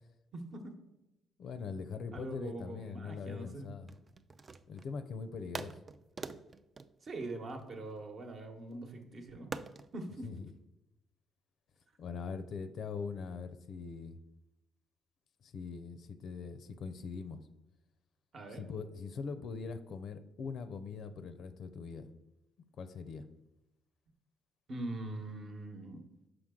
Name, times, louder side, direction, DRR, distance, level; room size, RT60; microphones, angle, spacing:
voice 1, 0.3-0.7 2.1-3.7 7.0-9.5 9.9-10.3 18.3-18.6 24.7-26.0, right 2 dB, 45° right, 5 dB, 1.0 m, -42 dB
voice 2, 1.4-3.9 4.7-5.8 10.2-10.5 12.0-14.2 15.4-17.4 18.5-22.1 22.8-23.3, left 5 dB, 60° left, 10 dB, 0.5 m, -42 dB
sound 1, 3.8-5.0 5.5-8.0 9.5-9.9, right 4 dB, 30° right, 0.3 m, -45 dB
6.0 x 4.9 x 3.7 m, 0.97 s
cardioid pair, 110°, 0 cm